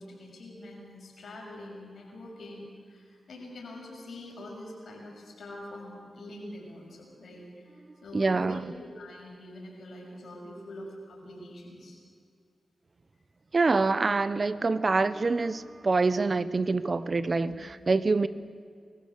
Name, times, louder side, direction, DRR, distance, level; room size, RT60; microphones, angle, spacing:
voice 1, 0.0-8.6 8.9-12.0 17.4-17.6, left 1 dB, 75° left, -1 dB, 6.6 m, -44 dB
voice 2, 8.1-8.7 13.5-18.3, right 3 dB, 45° right, 15 dB, 0.9 m, -26 dB
24.5 x 14.5 x 8.1 m, 2.2 s
cardioid pair, 50°, 0 cm